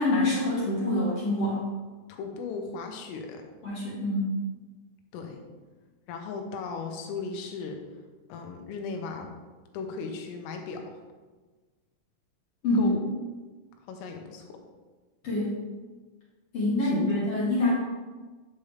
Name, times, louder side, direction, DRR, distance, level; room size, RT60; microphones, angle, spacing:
voice 1, 0.0-1.6 3.6-4.3 12.6-12.9 15.2-15.6 16.5-17.7, left 2 dB, 55° left, -7 dB, 1.7 m, -25 dB
voice 2, 2.1-3.4 5.1-5.4 6.1-7.8 8.3-9.3 9.7-11.0 12.7-13.1 13.9-14.6 16.8-16.9, left 4 dB, 85° left, 3 dB, 3.6 m, -37 dB
9.8 x 7.2 x 3.3 m, 1.3 s
omnidirectional pair, 5.8 m